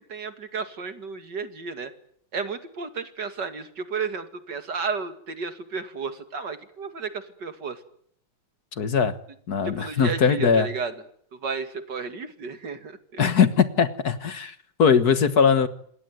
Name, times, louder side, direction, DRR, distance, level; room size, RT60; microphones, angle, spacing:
voice 1, 0.1-1.9 2.3-7.8 9.6-10.9 11.4-13.2, right 5 dB, 65° right, 9 dB, 2.8 m, -33 dB
voice 2, 8.8-9.2 9.5-10.7 13.2-14.5 14.8-15.7, left 6 dB, 55° left, 12 dB, 1.9 m, -20 dB
27.5 x 20.5 x 9.4 m, 0.65 s
omnidirectional pair, 2.0 m